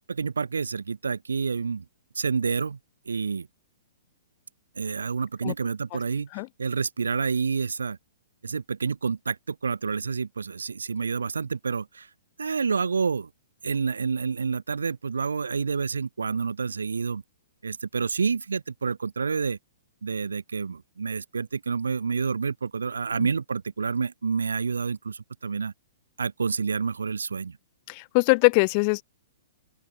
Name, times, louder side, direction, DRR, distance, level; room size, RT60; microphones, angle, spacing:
voice 1, 0.1-1.8 2.1-2.8 3.1-3.5 4.8-6.3 6.6-8.0 8.4-12.1 12.4-13.3 13.6-17.2 17.6-19.6 20.0-25.7 26.2-27.6, right 5 dB, 90° right, 1.0 m, -28 dB
voice 2, 27.9-29.0, left 35 dB, 40° left, 0.4 m, -21 dB
open air
hypercardioid pair, 130°, 0 cm